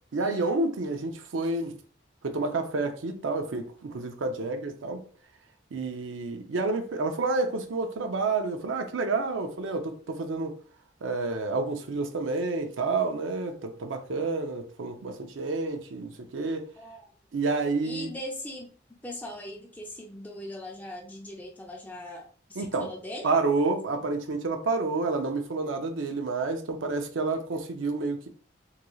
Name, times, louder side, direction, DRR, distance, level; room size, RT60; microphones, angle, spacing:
voice 1, 0.1-1.8 2.2-5.0 5.7-10.6 11.0-16.7 17.3-18.1 22.6-22.9 23.2-28.3, right 3 dB, 85° right, 0.5 m, -29 dB
voice 2, 16.8-17.1 17.8-18.7 19.0-23.3, left 1 dB, 10° left, 0.5 m, -40 dB
3.8 x 3.0 x 2.3 m
head